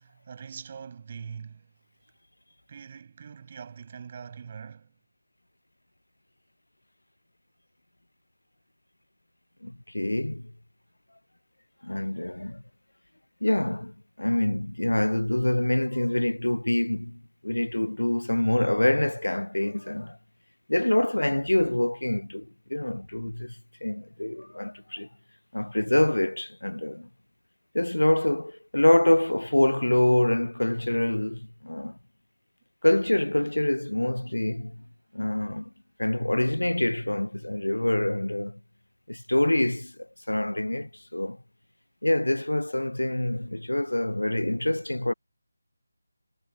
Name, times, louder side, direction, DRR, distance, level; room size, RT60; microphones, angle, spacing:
voice 1, 0.0-1.7 2.7-4.9, right 6 dB, 30° right, 6.9 m, -43 dB
voice 2, 9.6-10.4 11.8-12.6 13.4-20.2 20.7-23.5 23.8-25.1 25.5-27.1 27.7-32.0 32.8-34.8 35.1-35.7 36.0-38.6 39.1-39.9 40.3-41.4 42.0-45.1, left 1 dB, 80° left, 0.6 m, -25 dB
figure-of-eight pair, 160°, 0 cm